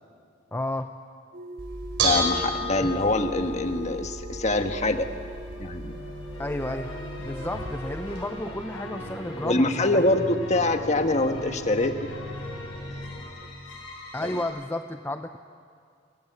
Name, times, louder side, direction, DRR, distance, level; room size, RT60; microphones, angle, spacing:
voice 1, 0.5-0.9 2.8-3.0 6.4-10.3 14.1-15.4, left 1 dB, 10° left, 7 dB, 0.6 m, -32 dB
sound 1, 1.3-9.6, right 2 dB, 50° right, 2.9 m, -43 dB
Bell / Dishes pots and pans, 1.6-8.2, right 1 dB, 70° right, 4.9 m, -32 dB
voice 2, 2.0-5.1 5.6-5.9 9.4-12.1 14.2-14.3, left 2 dB, 35° left, 7 dB, 1.5 m, -24 dB
sound 2, 4.6-14.4, left 1 dB, 90° left, 7.4 m, -39 dB
29.0 x 23.5 x 8.1 m, 2.2 s
head